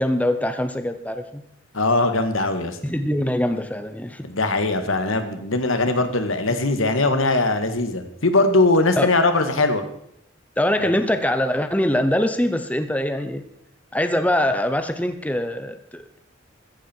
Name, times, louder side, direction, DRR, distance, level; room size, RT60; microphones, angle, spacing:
voice 1, 0.0-1.4 2.8-4.2 9.0-9.1 10.6-13.4 13.9-16.2, left 1 dB, 5° left, 9 dB, 0.8 m, -23 dB
voice 2, 1.7-2.8 4.2-9.8 10.8-10.9, left 2 dB, 90° left, 8 dB, 1.9 m, -20 dB
15.0 x 14.5 x 4.6 m, 0.71 s
head